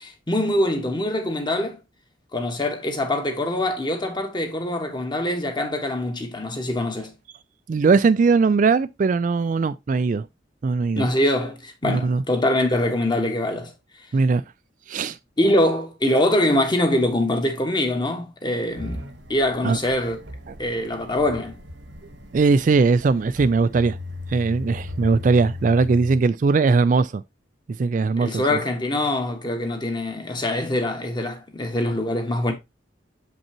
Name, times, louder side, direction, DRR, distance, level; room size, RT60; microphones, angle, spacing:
voice 1, 0.0-1.8 2.3-7.1 11.0-13.7 15.4-19.0 19.3-20.2 20.6-21.6 28.2-32.5, left 1 dB, 25° left, 1.2 m, -23 dB
voice 2, 7.7-10.3 10.6-11.1 11.8-12.2 14.1-14.4 14.9-15.2 19.6-19.8 20.5-20.6 22.3-24.0 24.3-27.2 27.8-28.6, right 4 dB, 45° right, 0.3 m, -20 dB
sound 1, 18.7-26.2, left 2 dB, 75° right, 1.2 m, -37 dB
7.0 x 5.3 x 2.9 m
head